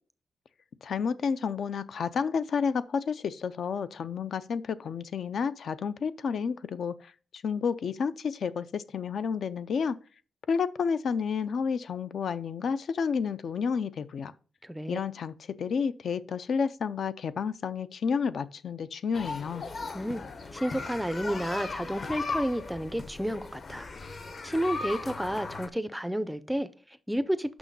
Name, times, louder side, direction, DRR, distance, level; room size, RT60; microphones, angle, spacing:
voice 1, 0.8-7.1 7.4-10.0 10.5-14.3 14.9-19.6, left 6 dB, 60° left, 0.4 m, -30 dB
voice 2, 14.6-15.0 19.9-20.2 20.5-23.9 24.4-27.6, equal, 5° right, 0.4 m, -31 dB
sound 1, 19.1-25.7, left 3 dB, 40° left, 0.8 m, -37 dB
6.1 x 5.8 x 5.3 m
wide cardioid pair, 155°, 0 cm